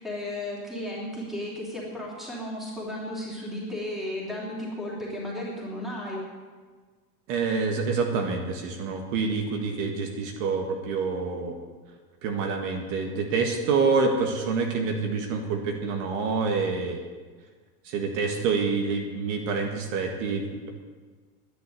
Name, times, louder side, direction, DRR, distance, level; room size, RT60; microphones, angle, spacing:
voice 1, 0.0-6.2, left 1 dB, ahead, -5 dB, 3.1 m, -34 dB
voice 2, 7.3-11.5 12.2-17.1 17.8-20.7, right 4 dB, 55° right, 3 dB, 1.8 m, -27 dB
11.5 x 10.5 x 8.2 m, 1.4 s
supercardioid pair, 175°, 47 cm